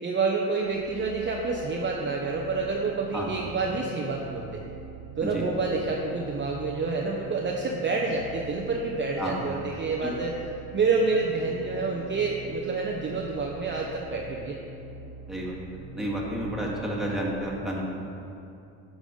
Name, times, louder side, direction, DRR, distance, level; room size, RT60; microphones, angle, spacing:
voice 1, 0.0-4.6 5.2-10.4 10.7-14.6, right 4 dB, 30° right, 0 dB, 0.7 m, -28 dB
sound 1, 0.6-17.1, right 3 dB, 65° right, 1.4 m, -43 dB
voice 2, 15.3-15.6 16.0-17.8, right 1 dB, ahead, -4 dB, 1.8 m, -31 dB
9.1 x 5.2 x 5.1 m, 2.6 s
cardioid pair, 90°, 37 cm